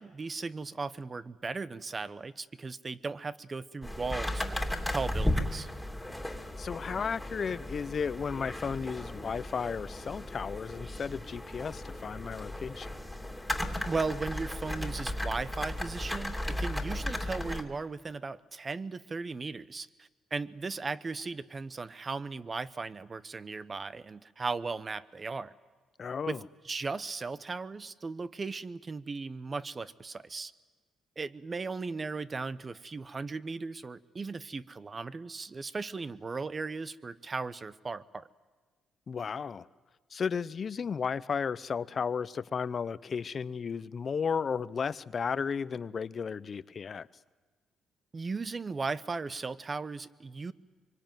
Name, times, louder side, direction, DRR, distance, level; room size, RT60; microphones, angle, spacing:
voice 1, 0.0-4.6 4.9-5.7 13.9-25.5 26.3-30.5 31.2-38.3 48.1-50.5, right 4 dB, 30° right, 0.9 m, -37 dB
sound 1, 3.8-17.6, left 1 dB, 5° left, 2.8 m, -35 dB
voice 2, 6.6-12.9 26.0-26.4 39.1-39.7 40.1-47.1, left 6 dB, 45° left, 0.7 m, -34 dB
24.5 x 24.5 x 9.2 m
cardioid pair, 90°, 0 cm